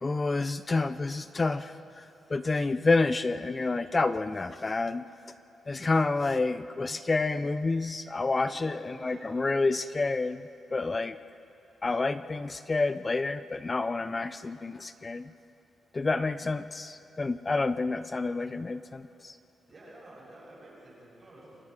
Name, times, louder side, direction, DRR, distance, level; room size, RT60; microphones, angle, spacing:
voice 1, 0.0-2.0 2.3-5.0 5.7-11.2 11.8-15.3 15.9-19.3, left 3 dB, 20° left, 13 dB, 0.4 m, -29 dB
voice 2, 8.5-9.5 19.7-21.6, right 1 dB, 30° right, -6 dB, 7.0 m, -50 dB
28.0 x 23.0 x 4.9 m, 2.8 s
wide cardioid pair, 170°, 0 cm